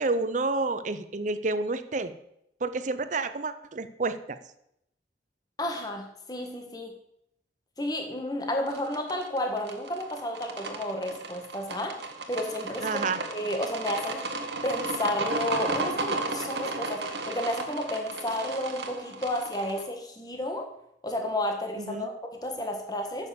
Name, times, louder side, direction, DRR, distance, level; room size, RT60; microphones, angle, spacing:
voice 1, 0.0-2.1 2.6-4.4 12.8-13.2 21.8-22.1, right 3 dB, 40° right, 11 dB, 0.6 m, -29 dB
voice 2, 5.6-6.9 7.8-12.0 12.3-13.0 13.3-14.3 14.6-20.7 21.0-23.3, left 1 dB, 20° left, 3 dB, 1.5 m, -32 dB
sound 1, 8.7-19.8, right 3 dB, 65° right, 1.4 m, -34 dB
9.7 x 6.6 x 6.9 m, 0.78 s
head